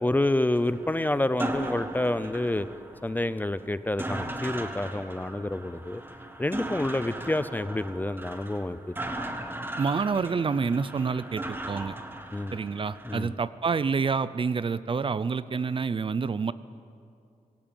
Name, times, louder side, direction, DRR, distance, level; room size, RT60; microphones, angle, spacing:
voice 1, 0.0-2.7 3.0-6.0 6.4-8.9 12.3-12.6 13.1-13.3, left 1 dB, 15° left, 14 dB, 0.5 m, -28 dB
sound 1, 0.5-13.2, right 1 dB, 15° right, 1.5 m, -38 dB
voice 2, 9.8-12.0 12.5-16.5, right 5 dB, 40° right, 15 dB, 0.6 m, -28 dB
23.5 x 17.5 x 9.1 m, 2.5 s
wide cardioid pair, 170°, 14 cm